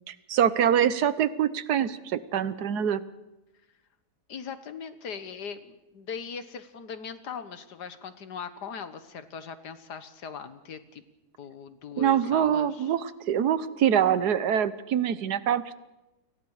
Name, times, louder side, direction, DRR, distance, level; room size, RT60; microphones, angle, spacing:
voice 1, 0.1-3.0 12.0-15.7, right 9 dB, 75° right, 14 dB, 1.5 m, -24 dB
voice 2, 4.3-11.0 11.4-12.9, left 6 dB, 85° left, 10 dB, 1.9 m, -40 dB
30.0 x 23.5 x 4.9 m, 0.99 s
omnidirectional pair, 1.7 m